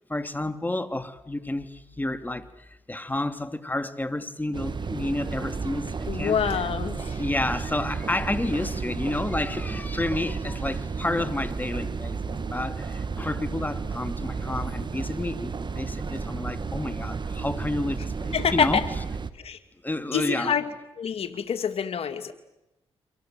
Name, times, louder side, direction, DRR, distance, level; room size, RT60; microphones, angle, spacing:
voice 1, 0.1-2.5 2.9-6.7 7.0-18.8 19.8-20.5, left 1 dB, 15° left, 9 dB, 2.9 m, -30 dB
sound 1, 4.5-19.3, right 5 dB, 45° right, 1.9 m, -32 dB
voice 2, 6.1-7.2 18.3-18.8 19.4-19.6 20.1-20.6 21.0-22.3, left 7 dB, 65° left, 8 dB, 2.6 m, -26 dB
29.5 x 25.5 x 7.9 m, 0.90 s
supercardioid pair, 50°, 11 cm